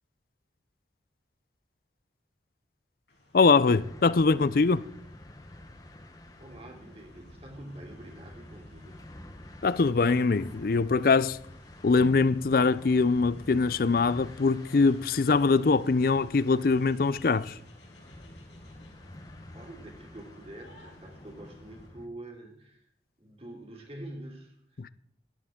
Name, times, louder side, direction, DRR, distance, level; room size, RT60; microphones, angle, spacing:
sound 1, 3.1-21.9, left 1 dB, 85° left, 5.0 m, -57 dB
voice 1, 3.3-4.8 9.6-11.4 11.8-17.6 24.8-24.9, left 4 dB, 55° left, 0.5 m, -23 dB
sound 2, 3.7-22.1, left 1 dB, 20° left, 0.8 m, -49 dB
voice 2, 6.4-9.0 19.0-19.1 19.5-22.9 23.2-24.8, right 1 dB, 35° right, 2.8 m, -46 dB
13.0 x 13.0 x 3.7 m
head